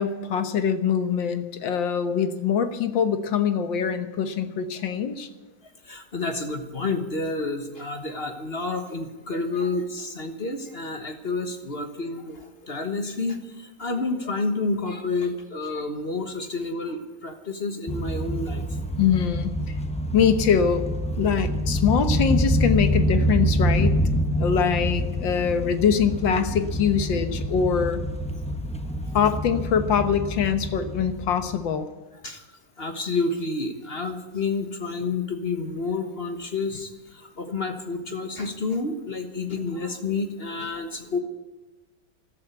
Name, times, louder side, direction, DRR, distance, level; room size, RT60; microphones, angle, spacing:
voice 1, 0.0-5.3 19.0-19.5 20.1-20.8 21.2-24.0 24.4-28.0 29.1-31.9, left 7 dB, 70° left, 9 dB, 1.8 m, -23 dB
voice 2, 5.8-18.8 29.0-29.3 32.2-32.5 32.8-41.2, left 3 dB, 35° left, 6 dB, 1.2 m, -29 dB
sound 1, 17.9-31.7, equal, 10° left, 0.4 m, -26 dB
13.5 x 12.5 x 8.1 m, 1.2 s
omnidirectional pair, 2.2 m